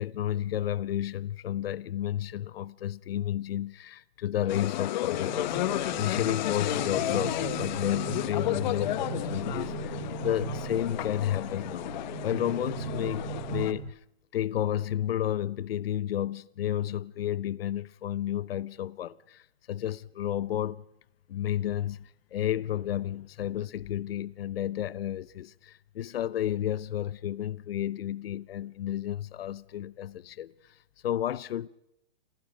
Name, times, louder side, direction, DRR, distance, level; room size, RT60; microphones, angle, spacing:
voice 1, 0.0-11.9 12.2-14.0 14.3-19.4 19.7-20.8 21.3-30.5 31.0-31.7, left 11 dB, 65° left, 0.9 m, -31 dB
sound 1, 4.5-13.7, left 13 dB, 45° left, 1.3 m, -32 dB
sound 2, 5.1-13.9, right 9 dB, 85° right, 1.2 m, -39 dB
28.0 x 28.0 x 5.2 m
hypercardioid pair, 145°, 31 cm